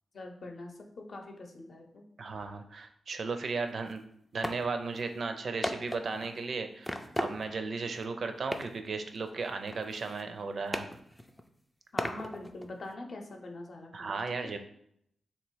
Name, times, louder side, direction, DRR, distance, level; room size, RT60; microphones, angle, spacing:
voice 1, 0.1-2.0 11.9-14.2, left 2 dB, 55° left, 3 dB, 0.7 m, -44 dB
voice 2, 2.2-4.0 4.3-10.9 13.9-14.6, right 4 dB, 55° right, 7 dB, 0.5 m, -35 dB
sound 1, 3.4-3.5 3.9-4.0 4.4-4.6 5.0-5.1 5.6-6.4 6.8-7.7 7.9-8.1 8.5-8.9 9.1-10.4 10.7-11.5 12.0-12.9, equal, 5° left, 0.3 m, -37 dB
3.3 x 3.0 x 4.6 m, 0.71 s
wide cardioid pair, 110°, 0 cm